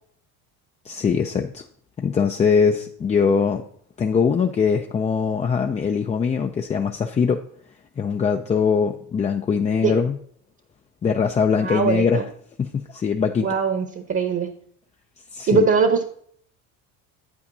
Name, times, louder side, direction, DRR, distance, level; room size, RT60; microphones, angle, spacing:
voice 1, 0.8-1.6 2.0-3.6 4.0-7.4 8.0-10.2 11.0-12.3 12.6-13.5 15.3-15.7, left 6 dB, 20° left, 4 dB, 0.3 m, -22 dB
voice 2, 11.6-12.2 13.4-14.5 15.5-16.0, right 5 dB, 30° right, 7 dB, 0.9 m, -21 dB
8.7 x 8.6 x 2.7 m, 0.62 s
supercardioid pair, 95°, 42 cm